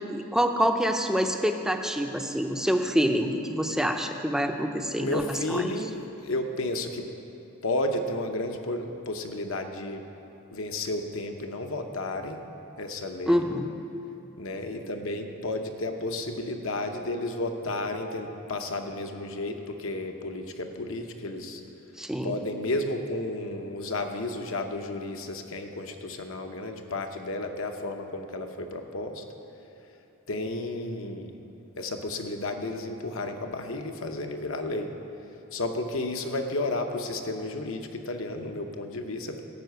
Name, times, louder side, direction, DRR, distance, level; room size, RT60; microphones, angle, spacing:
voice 1, 0.0-5.7 13.3-13.7 22.0-22.4, equal, ahead, 5 dB, 0.5 m, -26 dB
voice 2, 5.0-7.1 7.6-10.0 10.5-12.4 12.8-13.5 14.4-21.6 22.2-29.2 30.3-31.3 31.8-34.9 35.5-39.4, left 2 dB, 65° left, 5 dB, 0.8 m, -32 dB
12.0 x 5.7 x 8.0 m, 2.9 s
head